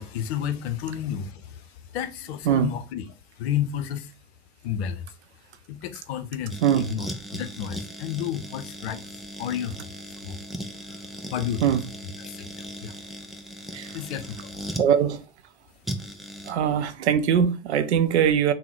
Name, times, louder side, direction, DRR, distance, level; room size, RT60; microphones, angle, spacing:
voice 1, 0.0-3.0 3.4-4.1 4.6-5.1 5.7-7.1 7.3-9.1 9.4-9.8 10.2-10.4 10.9-11.0 11.3-11.7 12.2-12.9 13.9-14.5, left 9 dB, 65° left, 0.6 m, -31 dB
sound 1, 6.5-14.9 15.8-16.5, equal, ahead, 0.3 m, -38 dB
voice 2, 6.6-6.9 11.6-11.9 13.7-14.0 14.8-15.2 16.5-18.5, right 8 dB, 70° right, 0.5 m, -22 dB
3.7 x 2.1 x 4.3 m
figure-of-eight pair, 80°, 35 cm